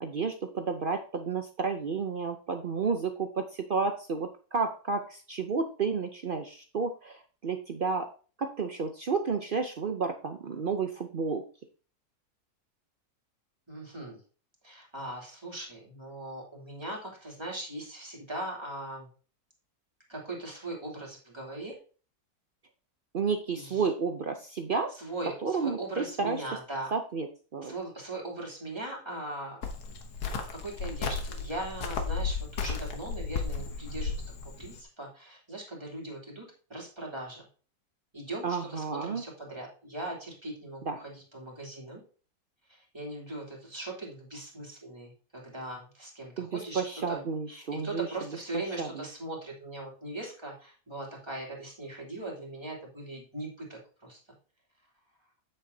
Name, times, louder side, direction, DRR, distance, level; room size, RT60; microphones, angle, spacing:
voice 1, 0.0-8.1 8.4-11.4 23.1-24.9 25.4-26.4 26.9-27.3 27.5-27.7 38.4-39.2 40.9-41.0 46.4-48.1 48.8-49.0, right 5 dB, 55° right, 6 dB, 0.6 m, -31 dB
voice 2, 13.7-14.2 14.6-19.1 20.1-21.8 23.5-23.9 24.9-26.9 27.6-29.6 30.5-37.4 38.1-42.0 42.7-47.2 47.5-54.2, right 1 dB, 15° right, -3 dB, 2.8 m, -40 dB
Cricket, 29.6-34.8, left 5 dB, 85° left, 1.6 m, -34 dB
8.6 x 7.3 x 2.7 m, 0.38 s
omnidirectional pair, 1.6 m